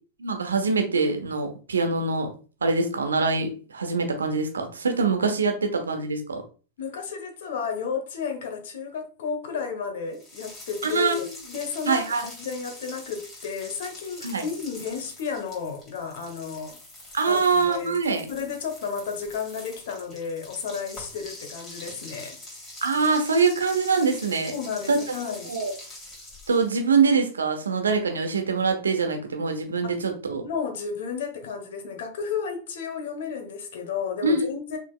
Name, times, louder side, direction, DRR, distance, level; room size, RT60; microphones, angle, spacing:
voice 1, 0.2-2.3 2.6-6.4 10.8-11.3 11.9-12.2 14.2-14.4 17.1-18.2 22.8-24.5 24.9-25.0 25.5-25.7 26.5-30.4 34.2-34.5, right 4 dB, 70° right, 1.0 m, -24 dB
voice 2, 6.8-16.8 17.3-18.0 18.3-22.4 24.5-25.5 29.8-30.0 30.4-34.8, left 6 dB, 55° left, 1.0 m, -32 dB
sound 1, 10.1-26.9, left 1 dB, 20° left, 2.7 m, -44 dB
6.2 x 3.8 x 2.2 m
figure-of-eight pair, 90°, 0 cm